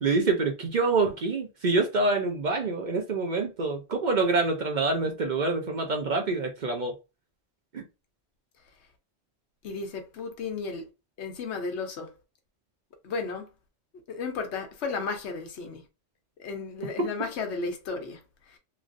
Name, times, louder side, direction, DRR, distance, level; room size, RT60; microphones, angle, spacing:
voice 1, 0.0-6.9 7.7-7.8, right 3 dB, 50° right, 0.6 m, -26 dB
voice 2, 9.6-10.9 11.2-12.1 13.0-13.5 14.1-15.8 16.4-18.2 18.5-18.6, left 4 dB, 70° left, 1.0 m, -34 dB
3.1 x 2.4 x 2.5 m
omnidirectional pair, 1.2 m